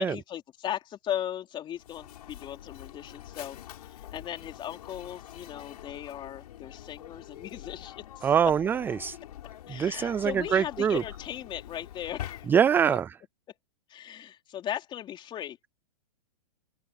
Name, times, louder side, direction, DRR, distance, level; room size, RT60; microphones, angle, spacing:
voice 1, 0.0-8.3 9.7-12.5 12.8-13.0 13.9-15.7, left 11 dB, 25° left, 3.4 m, -37 dB
Mechanisms, 1.7-12.9, left 12 dB, 70° left, 6.1 m, -45 dB
voice 2, 8.2-9.2 9.7-11.0 12.5-13.2, right 8 dB, 10° right, 0.4 m, -24 dB
open air
hypercardioid pair, 140°, 21 cm